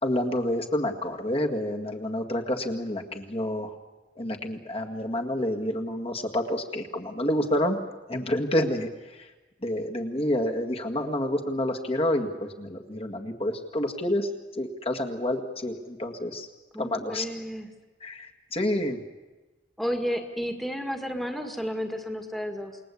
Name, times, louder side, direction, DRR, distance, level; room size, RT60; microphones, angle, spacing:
voice 1, 0.0-3.7 4.2-7.8 8.1-9.3 9.6-16.5 16.8-17.3 18.0-19.0, left 1 dB, 35° left, 2 dB, 2.0 m, -28 dB
voice 2, 16.7-17.7 19.8-22.8, equal, ahead, 4 dB, 1.9 m, -32 dB
28.5 x 20.5 x 8.5 m, 1.2 s
head